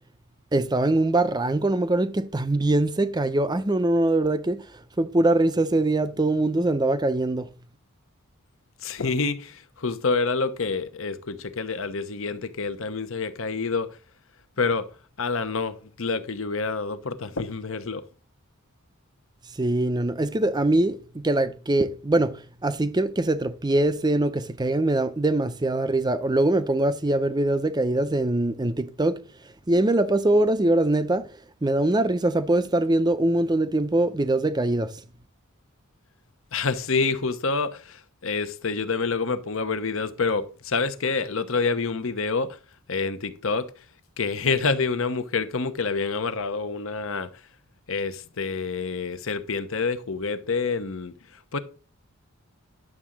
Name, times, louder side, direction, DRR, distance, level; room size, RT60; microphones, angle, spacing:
voice 1, 0.5-4.6 5.0-7.5 19.6-29.2 29.7-31.3 31.6-34.9, right 2 dB, 20° right, 0.5 m, -23 dB
voice 2, 8.8-13.9 14.6-14.9 15.2-18.0 36.5-42.6 42.9-43.7 44.2-47.3 47.9-51.1 51.5-51.6, left 4 dB, 65° left, 0.9 m, -27 dB
11.0 x 3.7 x 7.3 m
head